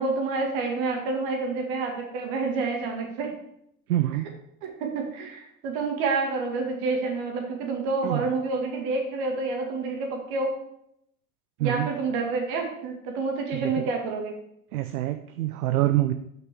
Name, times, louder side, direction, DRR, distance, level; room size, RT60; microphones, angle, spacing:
voice 1, 0.0-3.3 4.6-10.5 11.6-14.3, right 3 dB, 55° right, 2 dB, 2.3 m, -28 dB
voice 2, 3.9-4.3 8.0-8.3 11.6-11.9 13.5-13.9 14.7-16.1, right 15 dB, 75° right, 8 dB, 0.6 m, -26 dB
6.0 x 6.0 x 6.3 m, 0.75 s
figure-of-eight pair, 70°, 44 cm